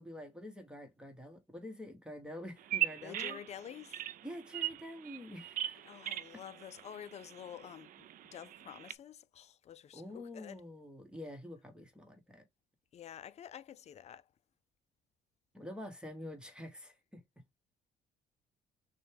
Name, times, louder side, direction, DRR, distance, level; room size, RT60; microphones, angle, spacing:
voice 1, 0.0-3.4 4.2-5.8 9.9-12.4 15.5-17.2, left 1 dB, 5° right, 1.2 m, -47 dB
Bird vocalization bird call bird song, 2.6-8.9, right 13 dB, 55° right, 0.4 m, -40 dB
voice 2, 3.0-4.0 5.8-10.6 12.9-14.2, left 9 dB, 40° left, 0.4 m, -49 dB
6.2 x 2.3 x 3.3 m
cardioid pair, 110°, 17 cm